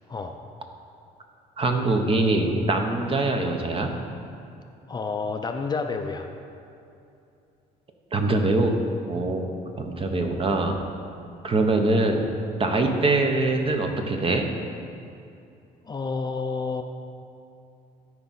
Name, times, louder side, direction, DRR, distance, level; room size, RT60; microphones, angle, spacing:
voice 1, 1.6-3.9 8.1-8.8 9.1-9.4 9.8-10.9 11.4-12.3 12.6-14.5, right 2 dB, 35° right, 4 dB, 0.9 m, -23 dB
voice 2, 4.9-6.3 15.9-16.8, left 4 dB, 25° left, 5 dB, 0.5 m, -29 dB
13.0 x 4.8 x 4.2 m, 2.6 s
cardioid pair, 110°, 17 cm